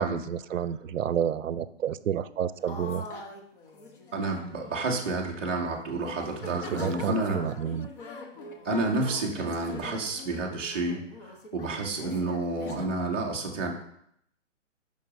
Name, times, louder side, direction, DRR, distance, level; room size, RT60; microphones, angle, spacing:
voice 1, 0.0-3.1 6.4-7.9, right 9 dB, 85° right, 16 dB, 0.6 m, -30 dB
sound 1, 2.7-5.2 5.7-5.9 6.1-12.9, left 3 dB, 45° left, 1.0 m, -43 dB
voice 2, 4.1-7.4 8.6-13.7, right 2 dB, 10° right, -8 dB, 0.3 m, -30 dB
8.8 x 5.4 x 2.6 m, 0.71 s
hypercardioid pair, 150°, 38 cm